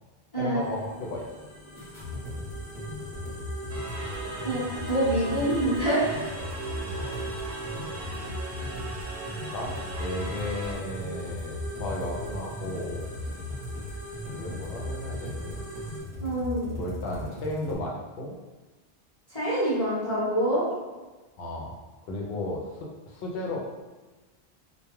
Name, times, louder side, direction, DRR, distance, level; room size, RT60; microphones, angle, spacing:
voice 1, 0.3-1.3 6.8-7.3 8.3-8.8 9.5-13.2 14.3-15.7 16.7-18.4 21.4-21.8 22.0-23.6, left 1 dB, 75° left, -1 dB, 0.8 m, -35 dB
sound 1, 0.6-16.0, right 2 dB, 20° left, 0.5 m, -42 dB
sound 2, 1.8-17.8, left 1 dB, 35° right, 0.8 m, -37 dB
sound 3, 3.7-10.7, right 2 dB, 65° right, 0.8 m, -39 dB
voice 2, 4.4-6.0 16.2-16.8 19.3-20.6, right 1 dB, 35° left, -12 dB, 0.9 m, -26 dB
2.3 x 2.2 x 3.0 m, 1.2 s
omnidirectional pair, 1.0 m